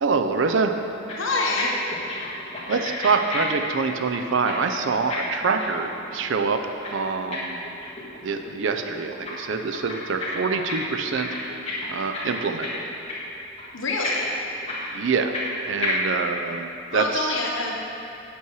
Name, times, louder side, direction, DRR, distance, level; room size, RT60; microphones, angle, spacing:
voice 1, 0.0-0.7 2.7-6.6 6.9-7.6 8.2-11.3 11.9-12.8 14.9-15.3 15.6-17.4, right 5 dB, 60° right, 6 dB, 0.4 m, -25 dB
sound 1, 1.1-1.6 1.9-4.5 4.8-8.2 8.4-9.3 9.6-10.7 11.0-12.8 13.1-13.3 13.6-13.7 14.0-15.5 15.8-15.9, left 3 dB, 30° left, 1.6 m, -32 dB
voice 2, 1.2-1.7 13.7-14.3 16.9-17.8, left 3 dB, 65° left, -1 dB, 1.1 m, -26 dB
8.3 x 6.1 x 4.7 m, 2.8 s
head